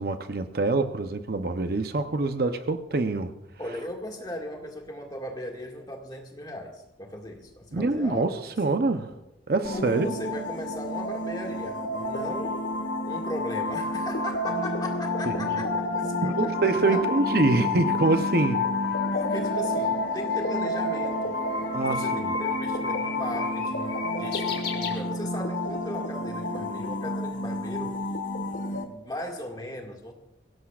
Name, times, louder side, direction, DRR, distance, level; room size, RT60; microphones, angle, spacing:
voice 1, 0.0-3.3 7.7-9.1 9.5-10.1 15.3-15.5 16.2-18.8 21.7-22.3, right 3 dB, 55° right, 8 dB, 0.7 m, -25 dB
voice 2, 3.6-8.3 9.7-12.6 13.0-16.5 16.9-17.1 19.1-28.0 28.4-30.1, left 1 dB, 20° left, 1 dB, 1.9 m, -38 dB
sound 1, 9.6-28.8, left 2 dB, 85° left, 1.5 m, -29 dB
Bird, 19.4-25.6, left 6 dB, 60° left, 2.6 m, -39 dB
22.5 x 17.0 x 2.4 m, 0.94 s
head